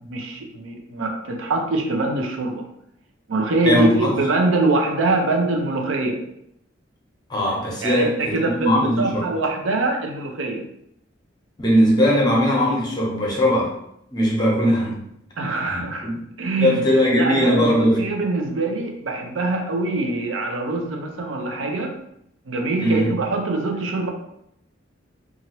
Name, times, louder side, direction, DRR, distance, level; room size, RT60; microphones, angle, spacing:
voice 1, 0.0-2.7 3.3-6.2 7.8-10.7 15.4-16.1 16.4-16.8 17.2-21.9 22.5-24.1, right 2 dB, 90° right, 3 dB, 0.5 m, -24 dB
voice 2, 3.6-4.1 7.3-9.3 11.6-13.7 14.1-15.0 15.7-16.2 16.6-18.0 22.8-23.1, equal, 20° left, -3 dB, 0.7 m, -19 dB
2.9 x 2.5 x 2.9 m, 0.75 s
head